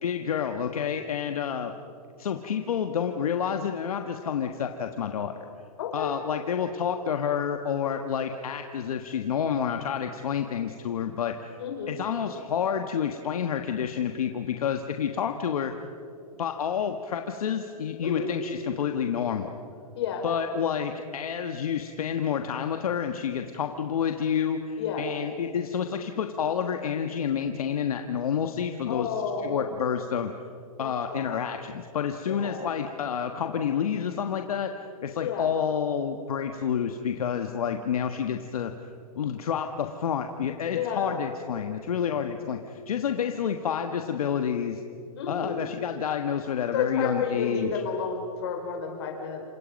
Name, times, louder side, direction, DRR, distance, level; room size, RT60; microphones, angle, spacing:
voice 1, 0.0-1.7 2.2-5.3 5.9-11.6 11.9-15.7 16.4-19.5 20.2-29.1 29.4-30.3 30.8-38.7 39.1-44.8 45.3-47.7, left 8 dB, 70° left, 6 dB, 1.4 m, -29 dB
voice 2, 5.8-6.1 11.6-11.9 18.0-18.3 20.0-20.3 24.8-25.0 28.9-29.6 30.8-31.4 32.3-32.6 35.2-35.5 40.7-41.3 45.2-45.6 46.7-49.4, left 6 dB, 45° left, 2 dB, 5.1 m, -31 dB
28.5 x 25.5 x 5.3 m, 2.6 s
hypercardioid pair, 170°, 20 cm